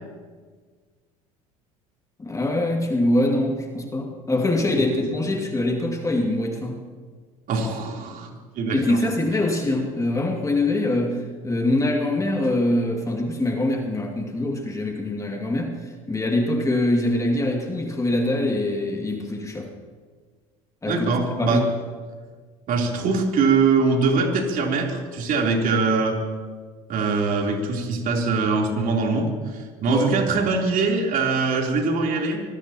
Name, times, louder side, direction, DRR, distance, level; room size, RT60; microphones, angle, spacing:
voice 1, 2.2-6.9 8.7-19.7 20.8-21.7 29.9-30.2, left 1 dB, 20° left, 2 dB, 2.4 m, -24 dB
voice 2, 7.5-9.0 20.9-21.6 22.7-26.2 26.9-32.4, right 4 dB, 50° right, 0 dB, 3.6 m, -22 dB
25.0 x 19.0 x 3.0 m, 1.5 s
hypercardioid pair, 75°, 18 cm